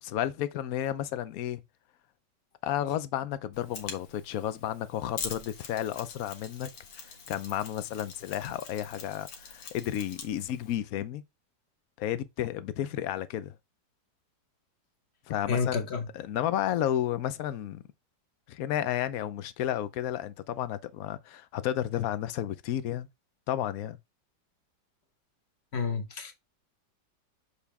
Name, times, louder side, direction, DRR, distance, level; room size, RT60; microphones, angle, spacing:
voice 1, 0.0-1.6 2.6-6.7 7.3-11.2 12.0-13.5 15.3-15.9 16.1-17.8 18.5-23.1 23.5-24.0, left 11 dB, 65° left, 0.9 m, -32 dB
Mechanisms, 3.5-10.8, left 5 dB, 85° left, 2.1 m, -44 dB
voice 2, 15.5-16.1 25.7-26.3, left 5 dB, 40° left, 1.2 m, -29 dB
6.8 x 4.8 x 3.4 m
omnidirectional pair, 2.0 m